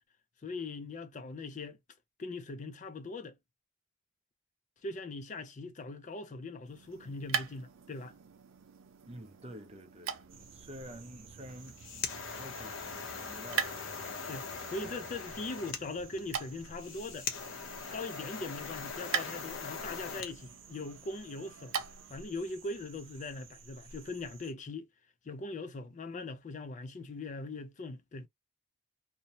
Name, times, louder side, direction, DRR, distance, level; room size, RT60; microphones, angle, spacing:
voice 1, 0.4-1.8 2.2-3.4 4.8-8.2 14.3-17.3 17.9-21.8 22.1-24.9 25.3-28.3, left 3 dB, 40° left, 0.4 m, -41 dB
sound 1, 6.6-22.3, right 7 dB, 90° right, 0.5 m, -42 dB
voice 2, 9.1-15.0, equal, 30° right, 0.5 m, -50 dB
sound 2, 10.3-24.5, right 4 dB, 70° right, 0.9 m, -54 dB
sound 3, 11.5-20.3, left 5 dB, 90° left, 0.7 m, -41 dB
2.7 x 2.1 x 2.8 m
head